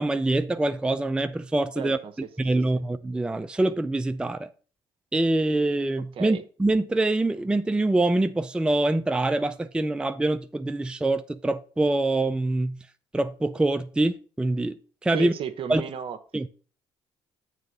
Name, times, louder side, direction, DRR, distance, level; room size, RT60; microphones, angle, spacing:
voice 1, 0.0-2.0 2.4-4.5 5.1-12.8 13.1-14.8 15.0-15.3 15.7-15.8 16.3-16.5, right 2 dB, 10° right, 0.4 m, -25 dB
voice 2, 1.8-2.1 2.7-2.8 6.2-6.4 15.1-16.2, right 8 dB, 55° right, 0.8 m, -33 dB
7.5 x 3.2 x 5.3 m
supercardioid pair, 70°, 11 cm